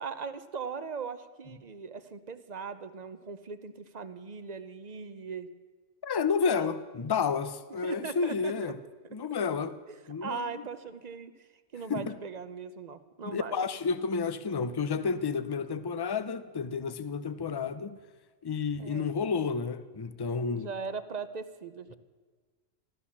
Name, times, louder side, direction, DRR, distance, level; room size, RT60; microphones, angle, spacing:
voice 1, 0.0-5.5 6.6-6.8 7.8-8.5 9.9-11.5 11.7-13.6 18.8-19.1 20.5-22.0, right 5 dB, 40° right, 0.7 m, -39 dB
voice 2, 6.0-8.8 9.1-9.8 10.1-10.6 11.9-12.1 13.2-18.0 18.4-20.7, left 5 dB, 35° left, 0.4 m, -31 dB
14.5 x 13.0 x 7.2 m
omnidirectional pair, 1.3 m